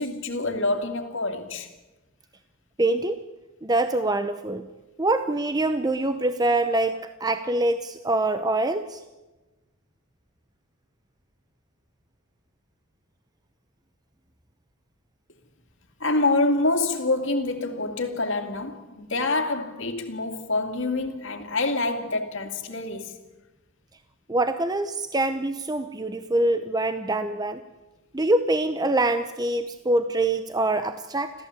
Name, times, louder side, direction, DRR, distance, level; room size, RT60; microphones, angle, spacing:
voice 1, 0.0-1.7 16.0-23.2, left 2 dB, 65° left, 2.5 m, -26 dB
voice 2, 2.8-3.2 3.6-4.6 5.0-9.0 24.3-27.6 28.1-31.3, right 2 dB, 20° right, 0.8 m, -24 dB
30.0 x 14.5 x 8.3 m
head